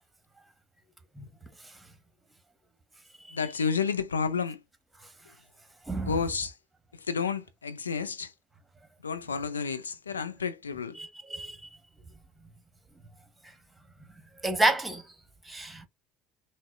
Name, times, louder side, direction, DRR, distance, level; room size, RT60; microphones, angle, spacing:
voice 1, 3.3-4.6 6.0-6.6 6.9-8.3 9.0-11.0, left 6 dB, 85° left, 0.4 m, -31 dB
voice 2, 11.0-11.6 14.4-15.0 15.5-15.9, right 1 dB, 10° right, 1.1 m, -29 dB
6.0 x 2.1 x 2.4 m
figure-of-eight pair, 65°, 0 cm